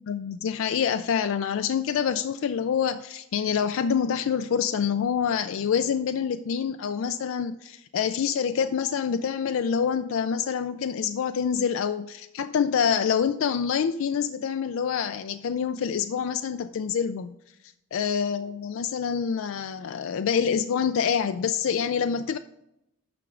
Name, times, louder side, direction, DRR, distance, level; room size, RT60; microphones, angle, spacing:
voice 1, 0.0-17.3 17.9-22.4, left 7 dB, 65° left, 9 dB, 0.4 m, -26 dB
9.2 x 5.9 x 3.7 m, 0.82 s
head